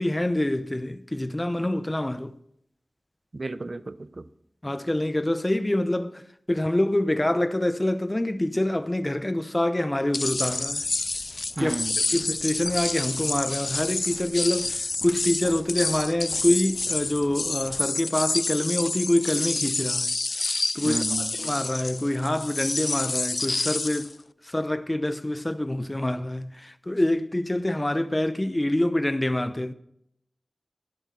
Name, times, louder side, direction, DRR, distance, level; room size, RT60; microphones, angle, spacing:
voice 1, 0.0-2.3 4.6-6.2 6.5-10.8 11.6-11.7 12.1-20.1 20.4-24.1 24.4-29.7, left 1 dB, 20° left, 0.8 m, -26 dB
voice 2, 3.3-4.3 11.6-12.0 20.8-21.4, right 3 dB, 50° right, 0.7 m, -33 dB
sound 1, 10.1-24.1, left 3 dB, 55° left, 0.4 m, -28 dB
sound 2, 10.2-17.8, equal, 10° right, 4.1 m, -48 dB
12.5 x 11.0 x 3.9 m
wide cardioid pair, 60°, 0 cm